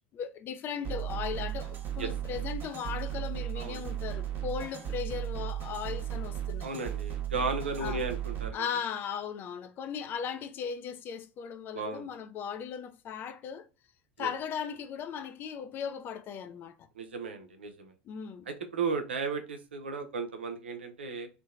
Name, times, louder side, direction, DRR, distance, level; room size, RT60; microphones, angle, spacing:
voice 1, 0.1-6.7 7.8-8.0 8.5-13.7 14.2-16.8 18.1-18.5, left 7 dB, 35° left, 0.3 m, -37 dB
sound 1, 0.8-8.5, right 11 dB, 40° right, 0.7 m, -35 dB
voice 2, 6.6-8.6 11.7-12.1 14.2-14.3 17.0-17.9 18.5-21.3, right 4 dB, 75° right, 0.5 m, -35 dB
2.7 x 2.2 x 2.4 m
figure-of-eight pair, 75°, 6 cm